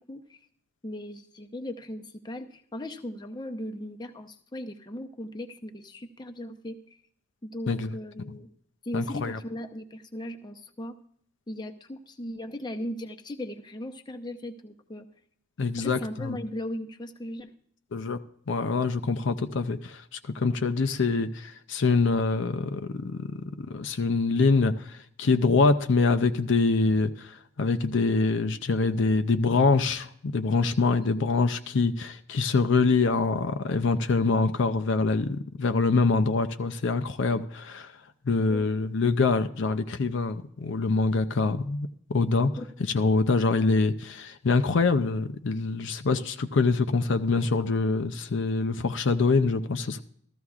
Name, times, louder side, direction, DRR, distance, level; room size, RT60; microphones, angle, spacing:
voice 1, 0.1-0.4 0.8-6.8 7.4-8.5 8.8-10.9 11.5-15.1 15.8-17.5 38.5-38.7 42.6-42.7, left 1 dB, 20° left, 0.7 m, -38 dB
voice 2, 8.9-9.4 15.6-16.4 17.9-18.2 18.5-23.3 23.6-37.9 38.3-42.5 42.8-50.0, left 3 dB, 60° left, 0.5 m, -25 dB
14.0 x 14.0 x 2.4 m
head